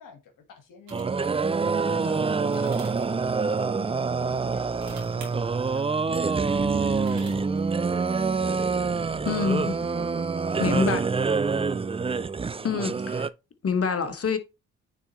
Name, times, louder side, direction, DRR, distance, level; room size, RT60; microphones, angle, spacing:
voice 1, 0.0-6.2 6.6-8.9 9.4-9.7 9.9-10.8 11.5-12.7, left 6 dB, 70° left, 1.7 m, -49 dB
sound 1, 0.9-13.3, right 4 dB, 15° right, 0.5 m, -26 dB
sound 2, 0.9-1.3 2.5-3.1 4.6-5.3 6.8-7.6, right 5 dB, 80° right, 2.4 m, -45 dB
voice 2, 9.2-9.7 10.6-11.1 11.5-11.6 12.6-13.3 13.6-14.4, left 5 dB, 45° left, 1.5 m, -26 dB
9.1 x 4.1 x 3.1 m
hypercardioid pair, 40°, 33 cm